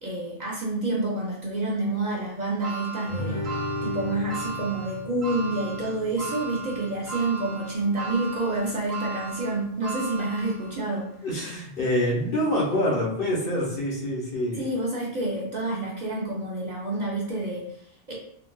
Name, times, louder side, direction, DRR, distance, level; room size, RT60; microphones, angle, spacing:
voice 1, 0.0-3.4 3.8-11.1 14.5-18.1, right 2 dB, 50° right, -3 dB, 0.6 m, -28 dB
sound 1, 2.6-11.0 11.5-11.6 12.7-12.8, right 5 dB, 80° right, 1.1 m, -37 dB
Guitar, 3.1-8.1, left 1 dB, 80° left, 1.4 m, -36 dB
voice 2, 11.2-14.7, left 1 dB, 60° left, -4 dB, 1.1 m, -26 dB
3.7 x 2.4 x 2.2 m, 0.70 s
omnidirectional pair, 1.1 m